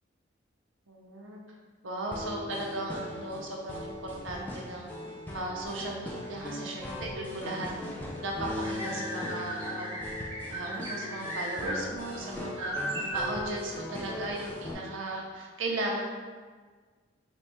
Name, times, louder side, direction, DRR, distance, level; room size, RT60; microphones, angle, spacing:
voice 1, 0.9-1.4 1.8-4.9 5.3-7.7 8.2-9.9 10.5-12.8 13.1-16.1, right 2 dB, 85° right, -2 dB, 0.6 m, -36 dB
sound 1, 2.1-14.7, left 1 dB, 10° left, 0.3 m, -39 dB
sound 2, 8.5-11.8 12.1-12.2 12.6-13.4, right 1 dB, 15° right, 0.8 m, -36 dB
3.3 x 2.3 x 4.1 m, 1.5 s
head